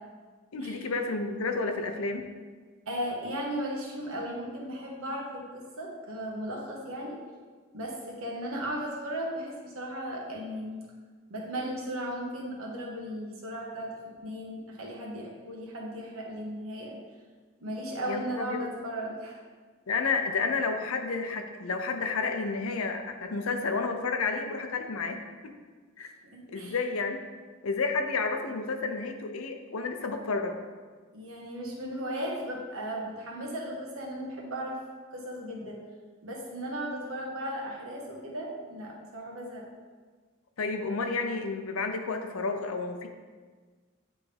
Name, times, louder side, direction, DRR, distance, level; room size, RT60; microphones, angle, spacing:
voice 1, 0.5-2.3 18.1-18.7 19.9-25.5 26.0-26.1 26.5-27.2 27.6-30.6 40.6-43.1, left 4 dB, 90° left, 6 dB, 0.6 m, -31 dB
voice 2, 2.9-7.2 7.7-10.8 11.3-16.9 17.6-19.4 26.0-26.7 31.1-34.8 35.1-35.8 36.2-39.6, equal, 85° right, -2 dB, 1.4 m, -36 dB
9.3 x 3.6 x 3.4 m, 1.5 s
head